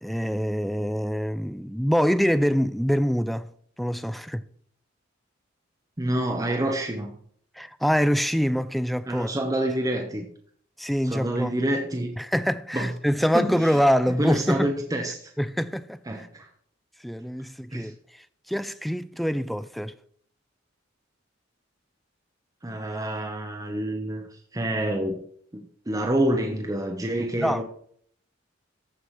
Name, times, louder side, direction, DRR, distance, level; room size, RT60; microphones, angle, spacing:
voice 1, 0.0-3.5 3.8-4.4 7.6-9.3 10.8-11.5 12.2-14.7 15.4-16.3 17.0-19.9 27.4-27.6, equal, ahead, 0.4 m, -25 dB
voice 2, 6.0-7.2 9.0-10.2 11.0-12.1 12.7-12.9 13.3-13.8 14.2-15.3 16.1-16.5 17.7-17.9 22.6-24.2 24.5-25.2 25.5-27.6, right 1 dB, 20° right, 0.9 m, -27 dB
14.5 x 4.8 x 5.7 m
head